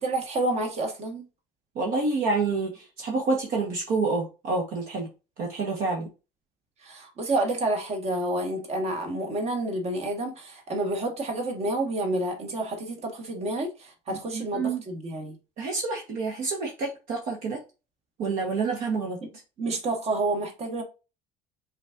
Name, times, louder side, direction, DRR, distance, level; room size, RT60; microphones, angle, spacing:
voice 1, 0.0-1.2 6.8-15.4 19.2-19.3 19.6-20.8, right 2 dB, 40° right, 1.5 m, -29 dB
voice 2, 1.7-2.7 3.0-5.1 5.4-6.1 14.1-14.8 15.6-17.6 18.2-19.2, right 3 dB, 65° right, 1.2 m, -28 dB
4.9 x 4.0 x 2.6 m
supercardioid pair, 95°, 16 cm